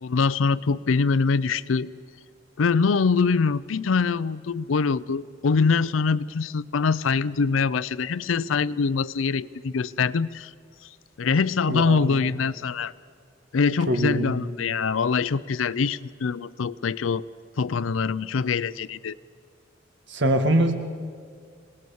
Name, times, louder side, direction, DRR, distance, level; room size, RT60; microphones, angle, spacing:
voice 1, 0.0-1.9 2.6-10.5 11.2-12.9 13.5-17.2 17.6-19.2, left 5 dB, 90° left, 18 dB, 0.5 m, -24 dB
voice 2, 11.7-12.2 13.9-14.3 20.1-20.8, right 1 dB, 65° right, 7 dB, 1.8 m, -23 dB
26.5 x 19.0 x 7.0 m, 2.1 s
head